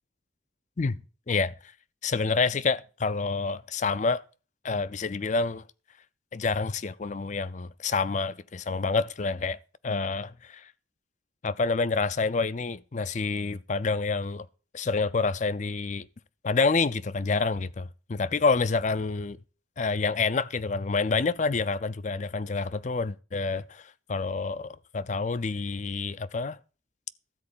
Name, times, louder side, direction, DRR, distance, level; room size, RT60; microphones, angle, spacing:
voice 1, 1.3-1.7 2.0-4.2 4.6-5.6 6.3-9.6 9.8-10.7 11.4-14.5 14.7-16.1 16.4-19.4 19.8-26.6, left 4 dB, 40° left, 0.4 m, -28 dB
13.0 x 4.6 x 8.6 m
head